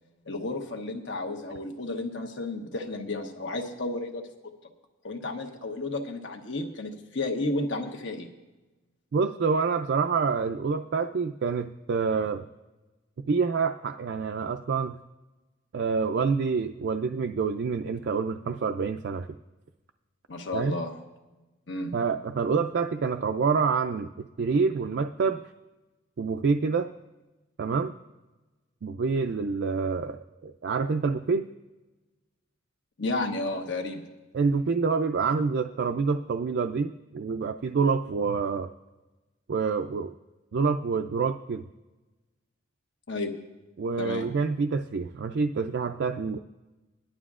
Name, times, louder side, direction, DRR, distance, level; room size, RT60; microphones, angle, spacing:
voice 1, 0.3-4.3 5.0-8.3 20.3-21.0 21.7-22.0 33.0-34.1 43.1-43.4 44.0-44.2, left 2 dB, 65° left, 3 dB, 1.2 m, -32 dB
voice 2, 9.1-12.4 13.3-15.0 15.7-19.3 20.5-20.8 21.9-24.1 24.4-25.4 26.2-26.9 27.6-28.0 28.8-31.5 34.3-38.7 39.5-40.1 40.5-41.6 43.8-46.4, right 5 dB, 60° right, 6 dB, 0.4 m, -27 dB
21.0 x 11.0 x 2.4 m, 1.1 s
head